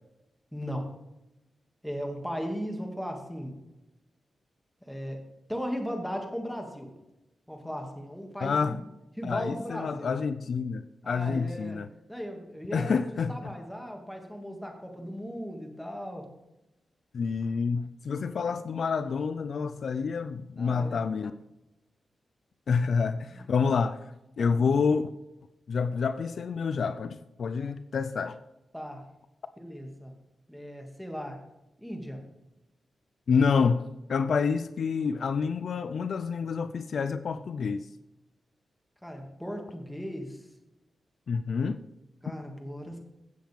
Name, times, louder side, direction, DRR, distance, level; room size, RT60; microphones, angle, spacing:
voice 1, 0.5-0.9 1.8-3.6 4.8-5.2 5.5-6.9 7.5-8.8 9.2-10.2 11.0-11.8 12.1-16.3 20.5-21.1 23.0-23.5 24.4-24.6 28.7-29.1 29.6-30.1 30.5-31.4 31.8-32.2 39.0-40.4 42.2-43.0, equal, 5° left, 2 dB, 2.3 m, -37 dB
voice 2, 8.4-8.8 9.2-11.9 12.7-13.3 17.1-21.3 22.7-24.0 24.4-25.1 25.7-28.4 33.3-37.9 41.3-41.8, left 5 dB, 65° left, 12 dB, 0.4 m, -28 dB
16.0 x 7.5 x 3.6 m, 0.95 s
wide cardioid pair, 95°, 0 cm